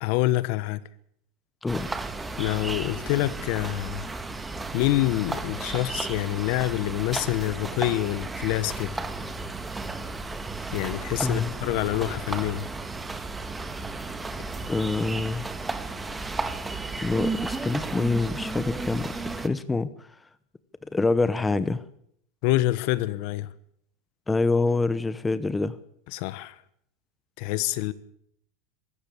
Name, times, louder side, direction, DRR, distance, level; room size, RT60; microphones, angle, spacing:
voice 1, 0.0-0.8 2.4-4.1 4.7-9.0 10.7-12.7 22.4-23.5 26.1-26.5 27.4-27.9, left 17 dB, 60° left, 17 dB, 1.2 m, -26 dB
voice 2, 1.6-1.9 11.2-11.5 14.7-15.5 17.0-19.1 19.4-20.1 20.9-21.8 24.3-25.8, left 3 dB, 10° left, 14 dB, 1.0 m, -26 dB
sound 1, 1.7-19.5, right 3 dB, 10° right, 1.5 m, -33 dB
23.5 x 14.0 x 8.6 m, 0.70 s
supercardioid pair, 140°, 0 cm